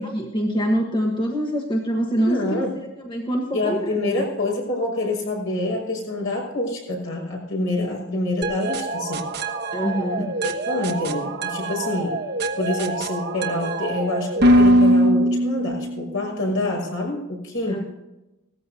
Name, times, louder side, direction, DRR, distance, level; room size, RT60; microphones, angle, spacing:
voice 1, 0.0-2.4 3.1-4.2 9.7-10.3 17.7-17.8, equal, 20° left, 1 dB, 1.4 m, -24 dB
voice 2, 2.2-2.7 3.5-9.2 10.2-12.2 12.6-17.8, left 2 dB, 65° left, -1 dB, 5.9 m, -26 dB
sound 1, 8.4-16.2, right 1 dB, 45° right, 1.2 m, -22 dB
18.0 x 14.5 x 2.8 m, 0.97 s
head